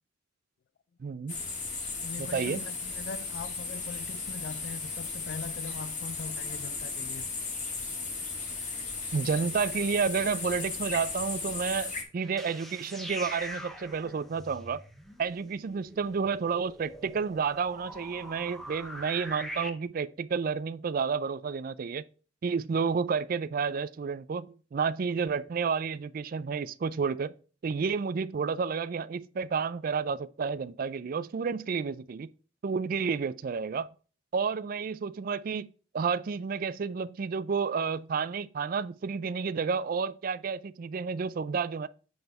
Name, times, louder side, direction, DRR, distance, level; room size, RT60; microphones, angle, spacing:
voice 1, 1.0-1.4 2.2-2.6 9.1-14.8 15.2-22.0 22.4-27.3 27.6-32.3 32.6-33.9 34.3-35.7 35.9-41.9, right 5 dB, 45° right, 0.3 m, -30 dB
sound 1, 1.3-12.0, left 4 dB, 40° left, 1.4 m, -36 dB
voice 2, 2.0-7.2, left 5 dB, 55° left, 0.3 m, -41 dB
sound 2, 12.2-19.7, equal, ahead, 0.7 m, -43 dB
7.8 x 3.4 x 5.3 m
head